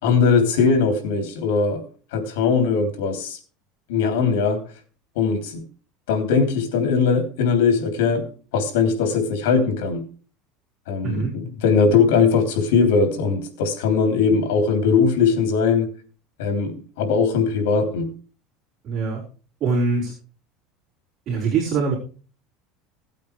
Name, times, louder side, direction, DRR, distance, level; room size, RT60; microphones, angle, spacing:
voice 1, 0.0-1.8 2.1-3.4 3.9-4.6 5.1-5.6 6.1-10.0 10.9-15.9 16.4-18.1, left 5 dB, 90° left, 3.3 m, -20 dB
voice 2, 18.8-19.2 19.6-20.1 21.3-21.9, right 4 dB, 30° right, 4.2 m, -23 dB
17.0 x 8.6 x 3.4 m
cardioid pair, 155°, 0 cm